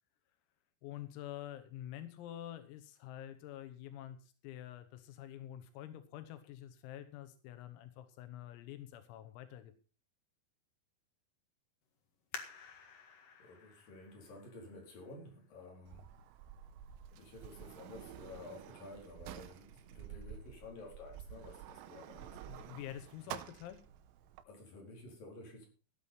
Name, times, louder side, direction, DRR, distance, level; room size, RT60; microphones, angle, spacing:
voice 1, 0.8-9.7 22.5-23.8, left 12 dB, 90° left, 3.8 m, -47 dB
sound 1, 12.3-15.7 16.3-16.4 17.0-17.4 17.8-17.9, left 5 dB, 60° left, 1.7 m, -51 dB
voice 2, 13.4-16.1 17.1-22.4 24.4-25.7, left 2 dB, 45° left, 5.9 m, -52 dB
Sliding door, 15.9-24.4, right 10 dB, 80° right, 3.4 m, -50 dB
15.0 x 8.9 x 5.5 m
omnidirectional pair, 5.9 m